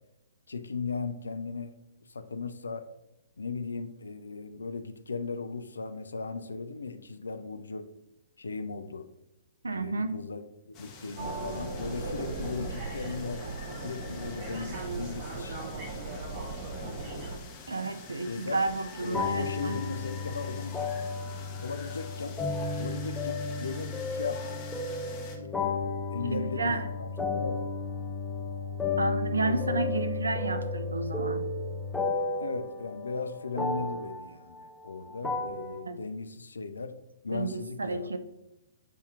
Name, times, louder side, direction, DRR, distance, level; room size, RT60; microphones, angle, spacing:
voice 1, 0.5-1.7 2.1-2.8 3.4-7.9 8.4-9.1 9.7-13.5 13.8-15.6 18.3-18.6 19.0-20.7 21.6-22.4 22.8-24.6 25.4-25.8 26.1-27.6 29.4-29.9 32.4-36.9 37.2-38.1, left 4 dB, 80° left, 10 dB, 0.4 m, -37 dB
voice 2, 9.6-10.1 17.7-19.8 26.2-26.9 29.0-31.5 35.8-36.0 37.3-38.2, right 3 dB, 80° right, 10 dB, 0.4 m, -31 dB
sound 1, 10.7-25.4, left 5 dB, 30° left, 0.9 m, -47 dB
sound 2, 11.2-17.4, right 3 dB, 40° right, 0.9 m, -37 dB
sound 3, 19.1-35.8, left 3 dB, 5° left, 0.5 m, -33 dB
7.4 x 2.8 x 2.4 m, 0.92 s
figure-of-eight pair, 120°, 0 cm